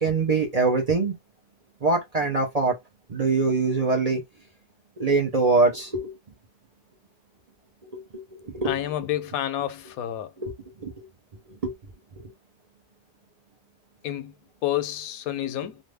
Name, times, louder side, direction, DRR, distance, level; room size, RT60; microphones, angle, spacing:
voice 1, 0.0-1.1 1.8-2.7 3.1-4.2 5.0-6.1 7.9-8.7 10.4-10.5 10.8-11.1 11.6-11.7, right 3 dB, 40° right, 0.6 m, -23 dB
voice 2, 8.6-10.3 14.0-14.3 14.6-15.7, left 12 dB, 90° left, 1.0 m, -29 dB
2.6 x 2.5 x 3.3 m
omnidirectional pair, 1.5 m